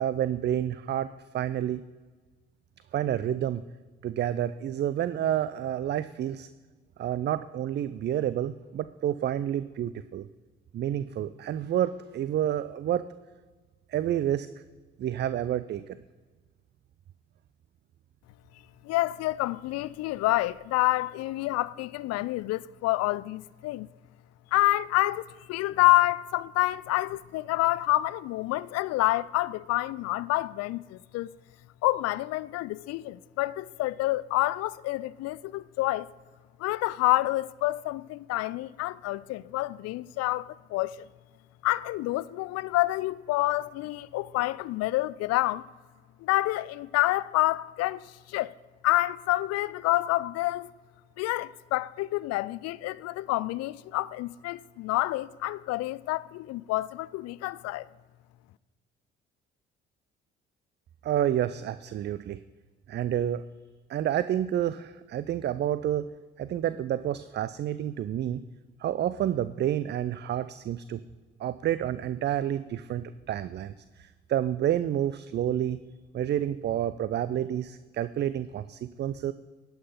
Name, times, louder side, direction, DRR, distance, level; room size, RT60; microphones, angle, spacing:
voice 1, 0.0-1.8 2.9-3.6 4.0-6.5 7.0-10.3 10.7-13.1 13.9-14.5 15.0-16.0 61.0-62.4 62.9-63.4 63.9-66.1 66.4-68.4 68.8-71.0 71.4-75.8 76.1-79.3, right 11 dB, 35° right, 0.4 m, -29 dB
voice 2, 18.8-23.9 24.5-31.3 31.8-36.1 36.6-41.1 41.6-45.7 46.2-48.5 48.8-50.7 51.2-57.9, left 17 dB, 60° left, 0.4 m, -28 dB
11.0 x 5.7 x 5.7 m
hypercardioid pair, 45°, 29 cm